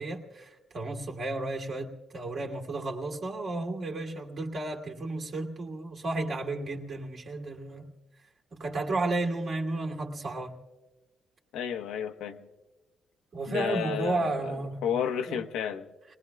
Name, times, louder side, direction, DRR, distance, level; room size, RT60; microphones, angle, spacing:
voice 1, 0.0-7.9 8.5-10.6 13.3-14.8 15.3-15.4, right 2 dB, 50° right, 0 dB, 2.5 m, -33 dB
voice 2, 11.5-12.5 13.5-14.5 14.8-15.9, left 8 dB, 90° left, 6 dB, 1.0 m, -32 dB
29.5 x 20.0 x 2.3 m, 1.2 s
cardioid pair, 90°, 0 cm